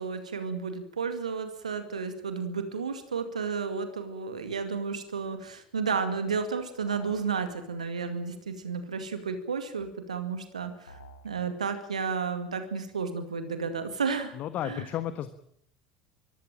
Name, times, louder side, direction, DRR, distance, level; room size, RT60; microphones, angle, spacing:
voice 1, 0.0-11.0 11.2-14.3 14.6-14.9, right 5 dB, 80° right, 9 dB, 2.2 m, -32 dB
sound 1, 6.9-7.3 10.9-11.3, left 1 dB, 85° left, 3.0 m, -50 dB
voice 2, 14.3-15.3, left 11 dB, 45° left, 12 dB, 1.3 m, -33 dB
23.5 x 15.5 x 9.0 m, 0.67 s
figure-of-eight pair, 65°, 4 cm